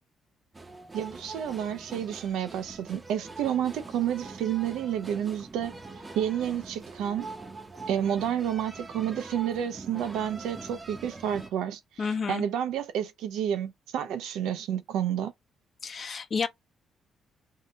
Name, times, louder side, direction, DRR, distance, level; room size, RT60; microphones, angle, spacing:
sound 1, 0.5-11.5, right 3 dB, 20° right, 0.7 m, -43 dB
voice 1, 0.9-5.7 6.2-7.3 7.9-15.3, right 9 dB, 85° right, 0.5 m, -30 dB
voice 2, 12.0-12.4 15.8-16.5, left 5 dB, 45° left, 0.8 m, -30 dB
2.7 x 2.6 x 3.2 m
cardioid pair, 90°, 0 cm